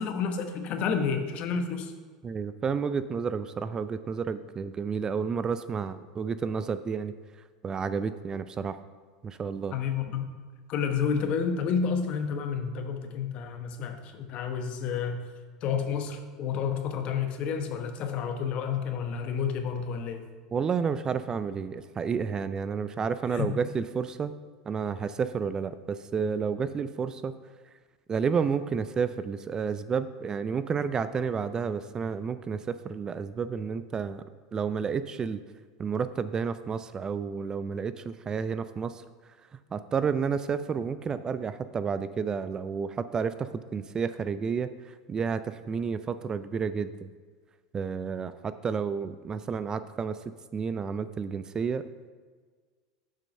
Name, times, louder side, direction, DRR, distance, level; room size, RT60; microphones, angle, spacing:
voice 1, 0.0-1.9 9.7-10.2 10.7-15.2 15.6-20.2 23.3-23.5, left 6 dB, 50° left, 7 dB, 1.0 m, -30 dB
voice 2, 2.2-7.1 7.6-8.8 9.2-9.7 20.5-24.3 24.7-27.3 28.1-34.2 34.5-35.4 35.8-39.0 39.7-47.1 47.7-50.2 50.5-51.8, right 6 dB, 25° right, 13 dB, 0.3 m, -31 dB
7.3 x 5.3 x 5.4 m, 1.5 s
hypercardioid pair, 95°, 3 cm